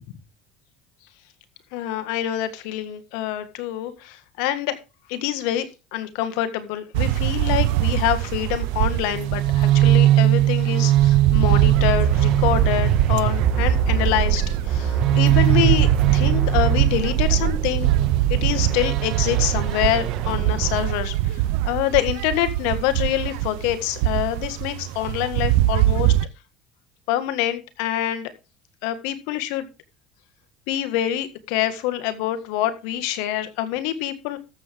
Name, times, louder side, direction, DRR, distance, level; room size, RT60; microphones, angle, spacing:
voice 1, 1.7-4.8 5.1-17.9 18.3-26.1 27.1-28.3 28.8-29.7 30.7-34.4, left 12 dB, 80° left, 10 dB, 1.7 m, -26 dB
sound 1, 6.9-26.3, right 15 dB, 80° right, 0.6 m, -23 dB
sound 2, 9.1-20.9, right 11 dB, 60° right, 1.7 m, -21 dB
13.5 x 7.5 x 3.6 m, 0.28 s
supercardioid pair, 105°, 0 cm